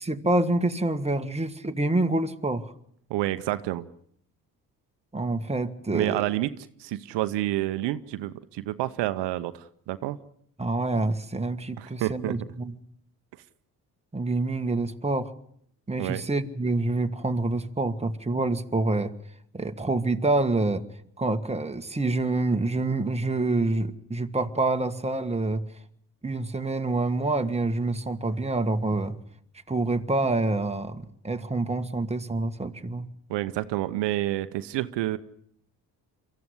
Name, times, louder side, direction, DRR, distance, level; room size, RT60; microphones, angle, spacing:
voice 1, 0.0-2.7 5.1-6.2 10.6-12.8 14.1-15.3 15.9-19.1 19.5-20.8 21.2-25.6 26.2-29.1 29.7-33.1, right 2 dB, 15° right, 7 dB, 1.7 m, -27 dB
voice 2, 3.1-3.9 5.9-6.5 6.8-10.2 11.8-12.4 16.0-16.2 33.3-35.2, right 15 dB, 80° right, 11 dB, 1.0 m, -29 dB
23.5 x 14.5 x 9.7 m, 0.69 s
supercardioid pair, 60°, 42 cm